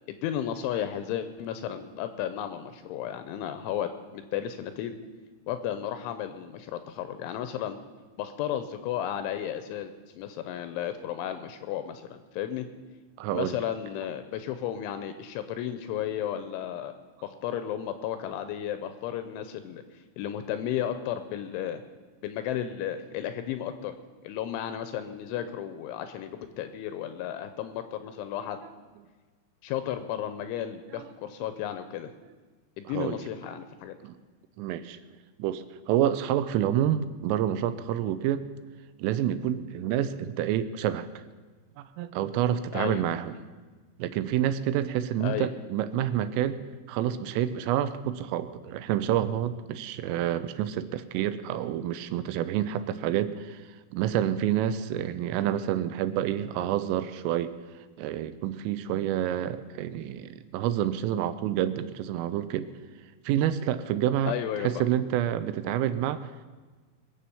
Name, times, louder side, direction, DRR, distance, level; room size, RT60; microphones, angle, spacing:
voice 1, 0.1-4.9 5.5-7.8 8.2-12.7 13.3-16.9 17.2-19.8 20.2-21.8 22.2-23.9 24.2-26.3 26.6-28.6 29.6-32.1 32.8-34.0 42.7-43.0 45.2-45.5 64.3-64.8, left 10 dB, 85° left, 9 dB, 2.9 m, -33 dB
voice 2, 13.2-13.6 30.9-31.1 32.9-33.2 34.0-34.1 34.6-35.0 35.4-38.5 39.0-41.1 42.0-43.3 44.0-46.6 46.9-53.6 53.9-57.6 58.0-62.7 63.3-66.3, right 11 dB, 85° right, 12 dB, 3.2 m, -28 dB
22.0 x 7.6 x 7.0 m, 1.4 s
omnidirectional pair, 5.9 m